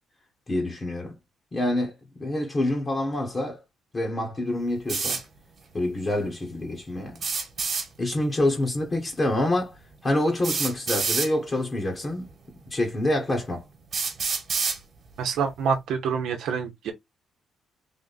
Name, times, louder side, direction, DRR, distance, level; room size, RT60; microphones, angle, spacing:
voice 1, 0.5-1.1 1.5-3.6 3.9-5.2 5.7-7.2 8.0-9.7 10.0-12.3 12.7-13.6, left 1 dB, 30° left, 1.4 m, -26 dB
sound 1, 4.9-5.2 7.2-7.9 9.3-9.4 10.4-11.3 12.3-12.4 13.1-13.2 13.9-14.8, right 5 dB, 50° right, 1.6 m, -27 dB
voice 2, 15.2-16.9, right 6 dB, 80° right, 0.9 m, -27 dB
3.6 x 2.6 x 4.0 m
cardioid pair, 90°, 0 cm